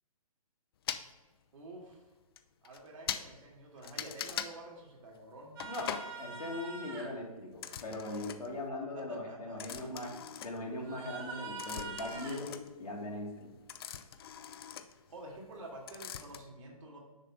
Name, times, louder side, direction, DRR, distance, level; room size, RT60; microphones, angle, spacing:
sound 1, 0.9-1.0 1.9-2.0 2.4-2.5 2.6-2.8 3.1-3.3 3.8-4.5 5.6-6.1 7.5-8.6 9.6-11.0 11.3-15.6 15.9-16.4, left 9 dB, 40° left, 0.4 m, -41 dB
voice 1, 1.5-2.1 2.6-5.6 8.9-10.2 15.1-17.0, right 2 dB, 60° right, -1 dB, 2.1 m, -49 dB
sound 2, 5.6-7.1 10.8-12.4 15.3-15.4, right 4 dB, 40° right, 1.3 m, -44 dB
voice 2, 5.7-10.1 10.4-13.5, left 1 dB, 90° left, -1 dB, 2.1 m, -40 dB
6.6 x 3.8 x 5.8 m, 1.2 s
hypercardioid pair, 140°, 19 cm